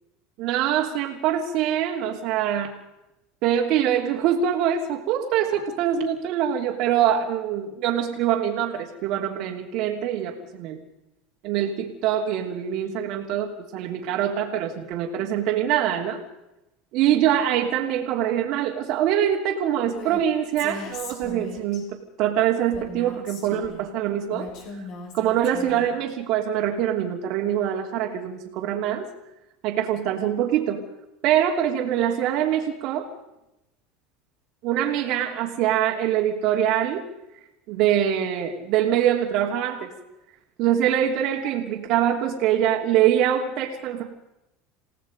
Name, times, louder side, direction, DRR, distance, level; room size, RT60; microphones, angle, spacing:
voice 1, 0.4-2.7 3.4-10.8 11.4-16.2 16.9-24.5 25.1-29.1 29.6-30.8 31.2-33.1 34.6-37.0 37.7-39.9 40.6-44.0, right 10 dB, 55° right, -1 dB, 3.0 m, -24 dB
Female speech woman speaking, 19.9-20.2 20.6-21.8 22.7-23.8 24.3-26.0, left 3 dB, 55° left, 5.9 m, -38 dB
28.5 x 17.5 x 5.3 m, 0.90 s
supercardioid pair, 135°, 0 cm